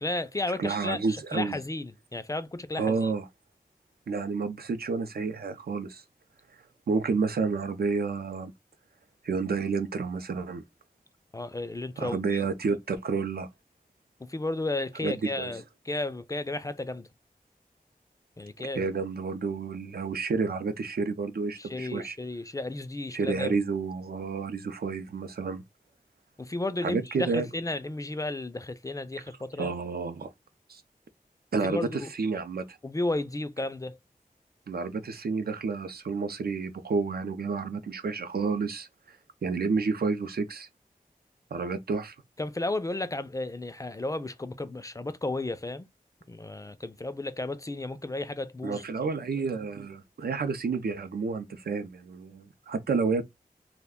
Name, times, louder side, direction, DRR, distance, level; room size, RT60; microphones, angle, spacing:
voice 1, 0.0-3.1 11.3-12.4 14.2-17.1 18.4-18.9 21.6-23.6 26.4-29.7 31.6-32.1 32.8-34.0 42.4-45.9 46.3-48.8, left 2 dB, 20° left, 0.3 m, -33 dB
voice 2, 0.6-1.6 2.8-3.2 4.1-6.0 6.9-8.5 9.2-10.6 12.0-13.5 15.0-15.5 18.7-22.2 23.1-25.6 26.8-27.4 29.6-30.3 30.7-30.8 31.5-32.8 34.7-40.7 41.5-42.2 48.6-53.2, right 4 dB, 85° right, 0.5 m, -30 dB
2.3 x 2.1 x 3.5 m
wide cardioid pair, 65°, 16 cm